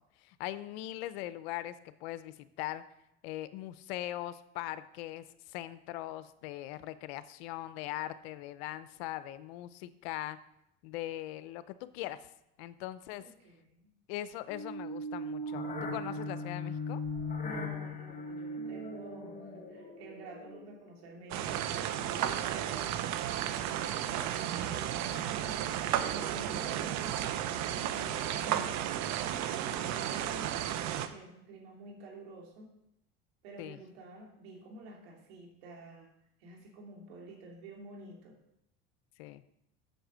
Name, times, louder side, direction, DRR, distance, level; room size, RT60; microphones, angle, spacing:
voice 1, 0.2-2.8 3.2-10.4 10.8-12.3 12.6-13.2 14.1-17.0 33.6-33.8 39.2-39.4, left 14 dB, 85° left, 14 dB, 0.7 m, -40 dB
voice 2, 13.2-13.9 17.4-23.0 24.1-28.8 29.8-32.7 33.4-36.1 36.4-38.4, right 2 dB, 90° right, 0 dB, 2.8 m, -49 dB
sound 1, 14.5-20.9, left 1 dB, 25° left, 1.7 m, -39 dB
sound 2, 21.3-31.1, right 11 dB, 65° right, 0.9 m, -33 dB
7.9 x 6.7 x 6.3 m, 0.81 s
supercardioid pair, 105°, 30 cm